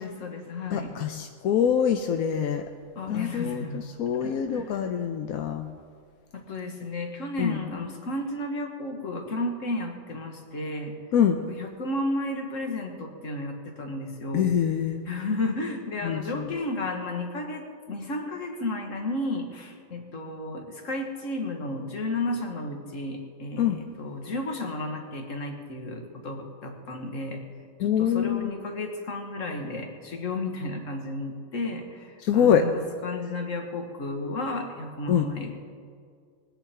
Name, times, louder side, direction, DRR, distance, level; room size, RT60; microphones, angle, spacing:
voice 1, 0.0-1.0 3.0-3.9 4.1-4.8 6.3-11.0 11.5-14.5 15.1-27.4 27.8-35.5, left 2 dB, 65° left, 3 dB, 1.9 m, -33 dB
voice 2, 0.7-2.6 3.1-5.7 7.4-7.6 11.1-11.4 14.3-15.0 16.0-16.5 23.6-23.8 27.8-28.5 32.2-32.7 35.1-35.3, left 8 dB, 85° left, 5 dB, 1.1 m, -25 dB
21.0 x 10.0 x 4.4 m, 2.1 s
omnidirectional pair, 1.5 m